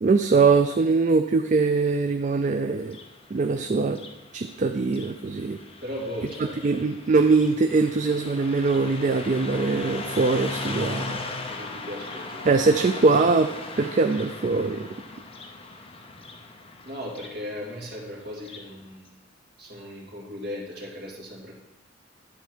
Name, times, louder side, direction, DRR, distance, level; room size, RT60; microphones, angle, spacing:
voice 1, 0.0-3.0 3.3-4.0 4.3-5.6 6.6-11.2 12.4-13.5 13.8-14.9, right 4 dB, 35° right, 7 dB, 0.3 m, -22 dB
Car passing by, 2.7-18.7, left 3 dB, 25° left, 0.7 m, -38 dB
voice 2, 5.8-6.7 11.4-12.5 16.8-19.2 19.6-21.5, left 1 dB, 55° right, -2 dB, 2.2 m, -37 dB
10.5 x 4.5 x 6.1 m, 0.98 s
head